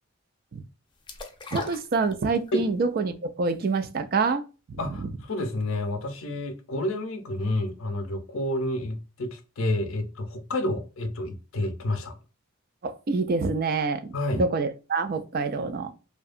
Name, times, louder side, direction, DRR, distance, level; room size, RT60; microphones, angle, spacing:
sound 1, 1.1-2.6 3.0-3.1, left 4 dB, 20° left, 0.5 m, -37 dB
voice 1, 1.5-4.4 4.7-4.8 12.8-15.9, right 4 dB, 45° right, 0.4 m, -26 dB
voice 2, 4.8-12.1 14.1-14.4, left 1 dB, 70° left, 0.6 m, -29 dB
2.7 x 2.2 x 2.4 m
head